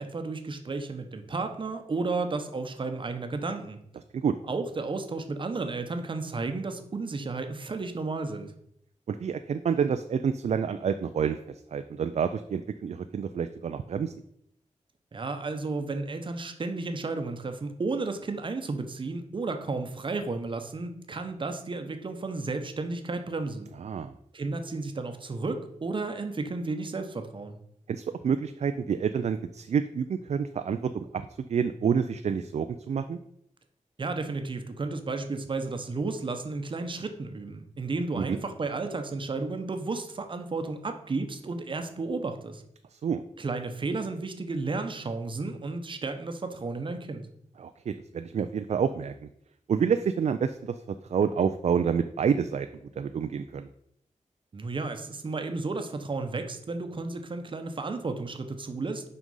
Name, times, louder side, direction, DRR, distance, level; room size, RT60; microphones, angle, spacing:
voice 1, 0.0-3.8 4.4-8.5 15.1-23.7 24.3-27.6 34.0-42.6 43.4-47.3 54.5-59.1, right 3 dB, 40° right, 7 dB, 0.8 m, -33 dB
voice 2, 9.1-11.4 11.7-14.1 23.8-24.1 27.9-31.2 31.5-33.2 38.2-38.4 42.9-43.2 47.6-49.3 49.7-50.7 51.1-52.7 53.0-53.7, right 7 dB, 60° right, 9 dB, 0.4 m, -28 dB
6.1 x 5.3 x 5.4 m, 0.73 s
wide cardioid pair, 165°, 13 cm